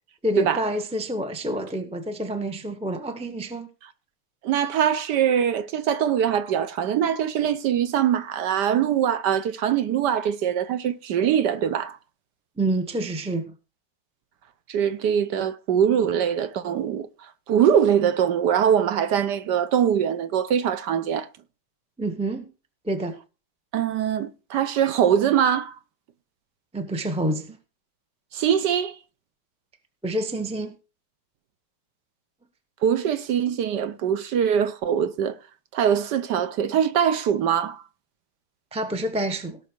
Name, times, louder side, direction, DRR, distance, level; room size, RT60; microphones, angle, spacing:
voice 1, 0.2-3.7 12.6-13.5 22.0-22.5 22.8-23.2 26.7-27.6 30.0-30.7 38.7-39.6, right 1 dB, 5° right, 0.5 m, -28 dB
voice 2, 4.4-12.0 14.7-17.1 17.5-21.3 23.7-25.8 28.3-29.0 32.8-35.4 35.7-37.8, right 9 dB, 65° right, 1.2 m, -22 dB
17.5 x 6.2 x 4.5 m
omnidirectional pair, 2.4 m